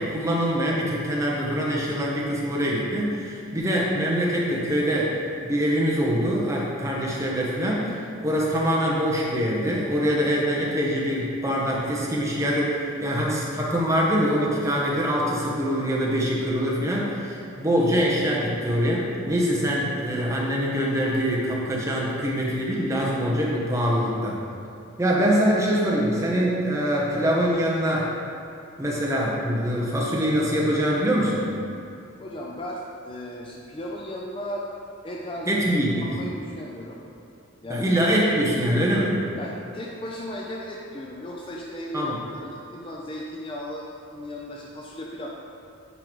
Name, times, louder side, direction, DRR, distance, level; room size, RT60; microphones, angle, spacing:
voice 1, 0.0-5.2 5.4-24.4 25.0-28.1 28.8-31.5 35.5-36.2 37.7-39.2 41.9-42.2, equal, 15° right, -4 dB, 0.8 m, -24 dB
voice 2, 32.2-34.7 35.0-35.6 36.0-37.0 37.6-37.9 39.4-45.3, left 1 dB, 25° left, -2 dB, 0.4 m, -36 dB
9.3 x 3.8 x 3.1 m, 2.6 s
head